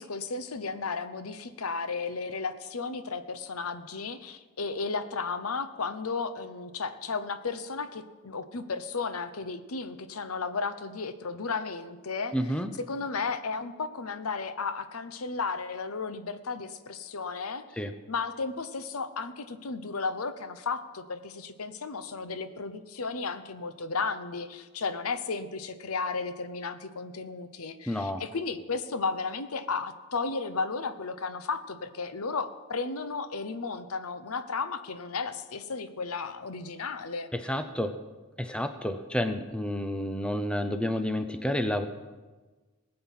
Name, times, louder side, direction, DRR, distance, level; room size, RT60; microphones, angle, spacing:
voice 1, 0.0-12.4 12.9-37.3, left 4 dB, 80° left, 11 dB, 0.9 m, -34 dB
voice 2, 12.3-12.7 17.8-17.9 27.9-28.2 37.3-38.0 38.4-41.9, left 1 dB, 5° left, 8 dB, 0.5 m, -30 dB
19.5 x 7.8 x 5.7 m, 1.3 s
head